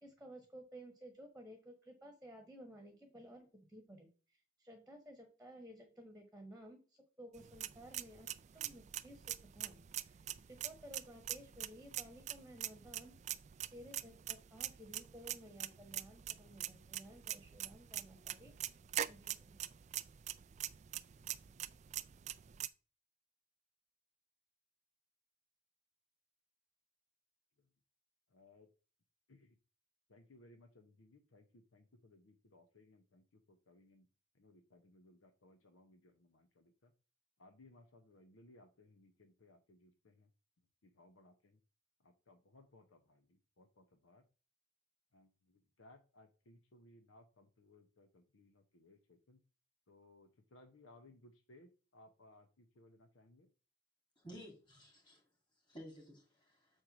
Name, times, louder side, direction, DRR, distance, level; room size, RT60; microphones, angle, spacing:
voice 1, 0.0-6.8 7.2-8.3 8.5-9.2 9.5-13.1 13.7-18.5 19.1-19.6, equal, 5° right, 1.2 m, -55 dB
sound 1, 7.4-22.7, right 12 dB, 35° right, 0.3 m, -44 dB
voice 2, 28.3-28.7 29.3-29.6 30.1-34.1 34.3-36.9 37.4-40.3 40.8-41.6 42.0-44.2 45.1-49.4 49.9-53.5, left 2 dB, 80° left, 0.8 m, -64 dB
voice 3, 54.2-55.2 55.7-56.7, equal, 25° left, 2.2 m, -54 dB
6.5 x 4.4 x 6.0 m
head